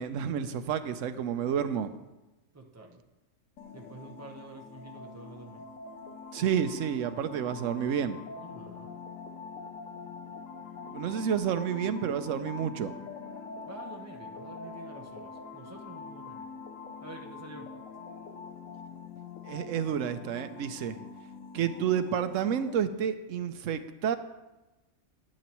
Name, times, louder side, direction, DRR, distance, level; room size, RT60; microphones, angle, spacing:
voice 1, 0.0-1.9 6.3-8.2 10.9-12.9 19.4-21.0 21.5-24.2, right 8 dB, 80° right, 11 dB, 1.0 m, -30 dB
voice 2, 2.5-3.0 3.7-5.7 8.4-8.9 13.7-16.5 17.0-17.7, right 2 dB, 15° right, 2 dB, 0.9 m, -48 dB
sound 1, 3.6-22.8, left 4 dB, 85° left, 1.2 m, -44 dB
10.5 x 9.8 x 3.0 m, 1.1 s
omnidirectional pair, 1.3 m